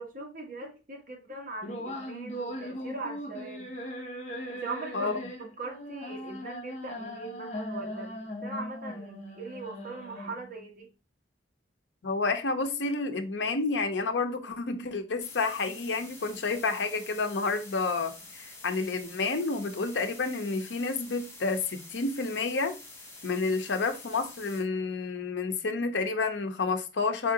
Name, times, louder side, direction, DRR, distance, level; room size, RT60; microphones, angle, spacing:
voice 1, 0.0-3.8 4.5-5.1 5.4-10.9, right 3 dB, 50° right, 1.2 m, -40 dB
sound 1, 1.6-10.6, equal, 40° left, 0.9 m, -39 dB
voice 2, 12.0-22.8 23.2-27.3, left 3 dB, 85° left, 0.7 m, -30 dB
sound 2, 15.2-24.6, left 2 dB, 15° left, 1.2 m, -48 dB
4.3 x 3.7 x 2.8 m
head